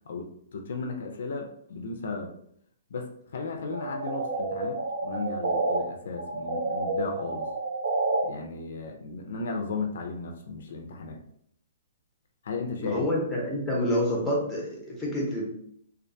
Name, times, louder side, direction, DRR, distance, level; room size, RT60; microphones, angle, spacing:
voice 1, 0.1-2.3 2.9-7.5 8.2-11.2 12.4-13.1, left 4 dB, 70° left, 3 dB, 0.4 m, -35 dB
sound 1, 3.7-5.8 6.1-8.2, right 2 dB, 65° right, 0.5 m, -29 dB
voice 2, 12.8-15.5, left 1 dB, 5° left, -4 dB, 0.6 m, -28 dB
2.3 x 2.2 x 2.6 m, 0.68 s
hypercardioid pair, 165°, 0 cm